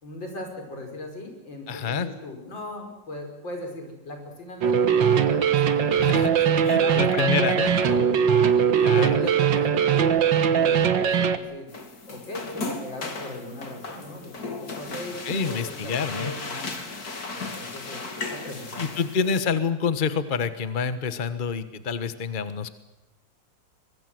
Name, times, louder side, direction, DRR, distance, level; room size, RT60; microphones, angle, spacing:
voice 1, 0.0-6.0 6.4-8.0 8.7-11.7 12.1-16.7 17.3-18.9, left 1 dB, 90° left, 3 dB, 6.2 m, -38 dB
voice 2, 1.7-2.1 5.9-7.7 8.8-9.2 15.2-16.3 18.8-22.7, left 6 dB, 30° left, 11 dB, 1.3 m, -27 dB
sound 1, 4.6-11.4, right 7 dB, 75° right, 2.0 m, -20 dB
sound 2, 11.7-19.4, left 3 dB, 55° left, 3.1 m, -36 dB
24.5 x 21.0 x 7.8 m, 0.98 s
omnidirectional pair, 2.0 m